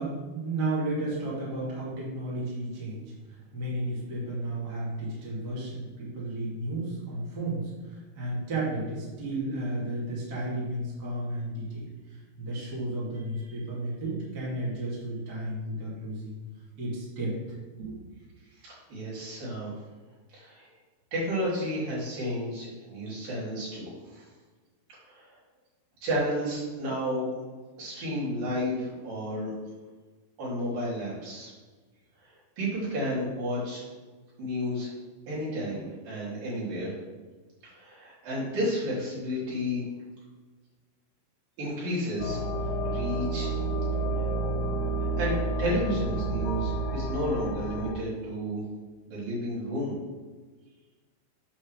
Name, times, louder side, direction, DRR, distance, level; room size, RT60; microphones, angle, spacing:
voice 1, 0.0-11.8 12.1-16.4 16.8-17.3 17.8-18.0, right 1 dB, 30° right, -7 dB, 2.6 m, -33 dB
voice 2, 18.6-19.7 20.3-20.7 21.1-24.3 25.0-25.4 26.0-27.3 27.8-29.5 30.4-31.5 32.2-33.8 34.4-34.9 35.3-36.9 37.7-39.8 41.6-42.4 42.8-43.5 44.2-44.3 45.0-48.6 49.1-49.9, equal, 65° right, -8 dB, 4.9 m, -32 dB
sound 1, 42.2-47.9, right 2 dB, 80° left, 3.3 m, -30 dB
8.8 x 4.4 x 6.4 m, 1.3 s
omnidirectional pair, 4.5 m